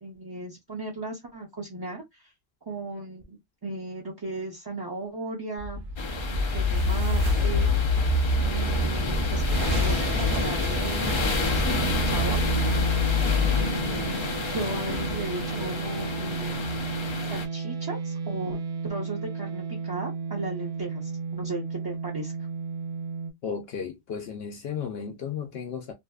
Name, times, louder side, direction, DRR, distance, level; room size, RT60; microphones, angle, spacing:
voice 1, 0.0-2.3 2.7-5.9 6.3-7.7 8.4-12.4 13.6-16.7 17.3-18.6 18.8-22.3, right 2 dB, 30° right, 0.5 m, -36 dB
sound 1, 5.6-14.7, left 2 dB, 55° right, 1.1 m, -26 dB
sound 2, 6.0-17.5, left 4 dB, 50° left, 0.3 m, -31 dB
sound 3, 9.5-23.3, right 5 dB, 75° right, 0.9 m, -33 dB
voice 2, 23.4-25.9, left 7 dB, 70° left, 0.8 m, -34 dB
2.6 x 2.4 x 2.2 m
omnidirectional pair, 1.1 m